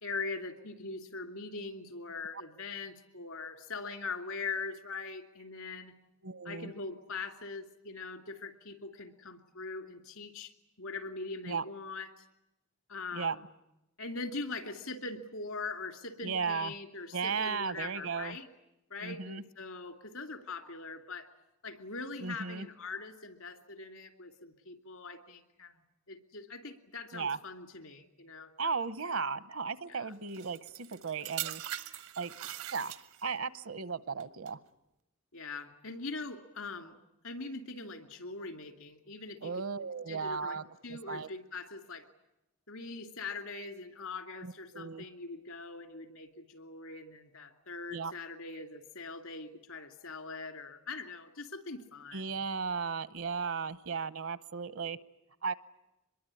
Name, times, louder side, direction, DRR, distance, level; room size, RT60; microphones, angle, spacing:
voice 1, 0.0-5.9 6.4-10.5 10.8-12.3 12.9-13.4 14.0-18.5 18.9-21.3 21.6-28.7 29.8-30.1 35.3-36.9 37.2-39.6 40.1-40.6 40.8-42.0 42.7-52.3, left 3 dB, 75° left, 6 dB, 2.6 m, -42 dB
voice 2, 6.2-6.7 11.4-11.6 13.1-13.4 16.2-16.7 17.1-18.4 19.0-19.4 22.2-22.7 27.1-27.4 28.6-31.6 32.2-34.6 39.4-41.3 44.4-45.0 47.9-48.1 52.1-55.0 55.4-55.5, right 5 dB, 65° right, 15 dB, 0.9 m, -36 dB
sound 1, 30.3-33.4 34.2-34.5, right 12 dB, 85° right, 1.4 m, -41 dB
25.0 x 22.0 x 9.9 m, 0.92 s
head